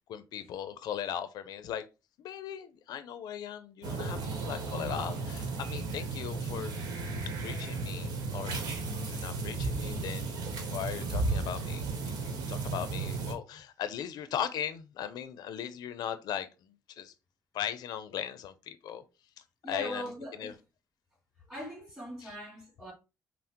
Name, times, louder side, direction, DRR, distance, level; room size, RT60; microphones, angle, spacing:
voice 1, 0.1-1.9 2.2-6.7 7.4-8.6 9.0-10.3 10.6-17.1 17.5-19.0 19.4-20.5 22.2-22.4, left 9 dB, 85° left, 0.4 m, -38 dB
sound 1, 3.8-13.3, right 3 dB, 85° right, 1.0 m, -34 dB
voice 2, 19.6-20.6 21.5-22.9, equal, 10° right, 2.0 m, -41 dB
5.6 x 2.0 x 2.9 m
cardioid pair, 150°, 7 cm